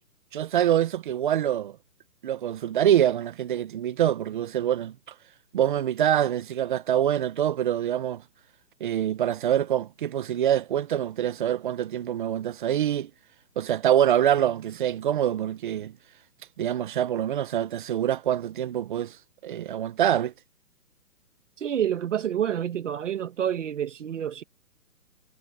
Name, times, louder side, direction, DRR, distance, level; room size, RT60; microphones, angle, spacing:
voice 1, 0.3-1.7 2.2-4.9 5.5-8.2 8.8-13.1 13.6-15.9 16.6-19.1 19.4-20.3, right 10 dB, 30° right, 1.1 m, -25 dB
voice 2, 21.6-24.4, right 9 dB, 50° right, 1.6 m, -28 dB
hypercardioid pair, 160°, 47 cm